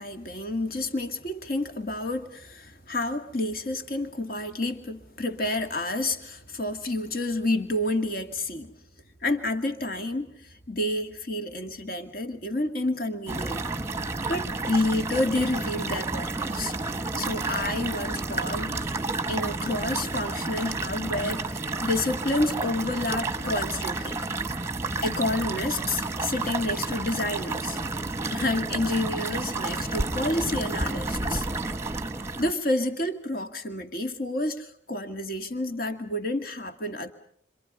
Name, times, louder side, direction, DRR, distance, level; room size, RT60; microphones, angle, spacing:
voice 1, 0.0-8.7 9.2-13.7 14.3-16.7 17.2-18.9 19.3-24.2 25.0-27.8 28.3-31.5 32.4-37.1, left 2 dB, 50° left, 7 dB, 2.2 m, -29 dB
sound 1, 13.3-32.5, right 3 dB, 15° right, 1.1 m, -31 dB
28.5 x 26.5 x 5.5 m, 0.65 s
head